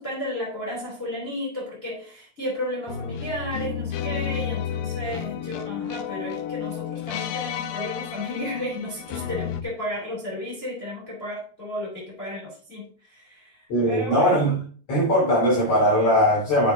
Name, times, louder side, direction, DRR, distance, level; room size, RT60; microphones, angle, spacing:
voice 1, 0.0-14.4, left 1 dB, 20° left, -4 dB, 3.1 m, -33 dB
sound 1, 2.9-9.6, left 9 dB, 90° left, 2.5 m, -31 dB
voice 2, 13.7-14.5 14.9-16.7, equal, 50° left, -5 dB, 3.8 m, -20 dB
7.4 x 7.3 x 5.0 m, 0.43 s
omnidirectional pair, 3.8 m